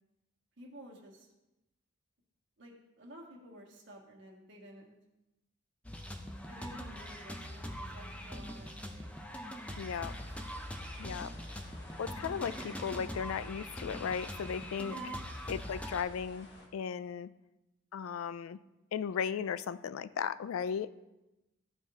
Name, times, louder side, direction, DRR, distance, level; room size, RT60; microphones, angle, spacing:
voice 1, 0.6-1.3 2.6-4.9 6.5-9.1 14.9-15.2, equal, 65° right, -2 dB, 1.5 m, -52 dB
sound 1, 5.8-16.0, equal, 5° left, 0.5 m, -42 dB
voice 2, 9.8-10.1 11.0-11.3 12.0-14.9 15.5-17.3 17.9-18.6 18.9-20.9, left 7 dB, 90° left, 16 dB, 0.3 m, -36 dB
sound 2, 10.0-16.7, left 2 dB, 55° left, 1.3 m, -55 dB
13.5 x 4.7 x 2.8 m, 0.98 s
head